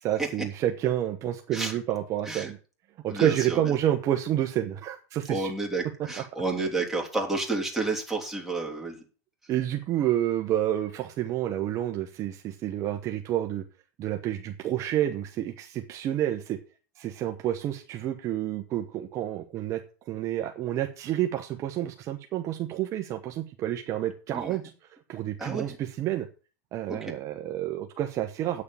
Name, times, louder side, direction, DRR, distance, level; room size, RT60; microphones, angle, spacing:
voice 1, 0.0-2.6 3.0-5.5 6.6-6.7 9.5-13.6 14.0-16.6 17.0-24.6 25.1-26.3 26.7-28.6, right 12 dB, 40° right, 5 dB, 1.2 m, -29 dB
voice 2, 3.1-3.6 5.3-9.0 24.3-24.6 25.4-25.8 26.9-27.1, right 3 dB, ahead, -2 dB, 3.2 m, -30 dB
8.8 x 6.7 x 8.3 m, 0.37 s
supercardioid pair, 120°, 8 cm